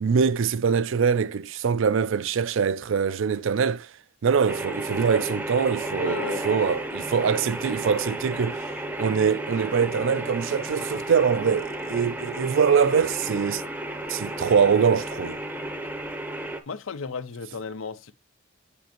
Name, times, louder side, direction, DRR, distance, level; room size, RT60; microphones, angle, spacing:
voice 1, 0.0-3.9 4.2-8.7 9.0-13.6 14.1-15.4, right 6 dB, 70° right, 0.4 m, -23 dB
sound 1, 4.5-16.6, right 1 dB, 10° right, 0.7 m, -33 dB
voice 2, 5.9-6.5 16.7-18.1, left 5 dB, 80° left, 0.6 m, -34 dB
7.1 x 5.1 x 2.9 m
head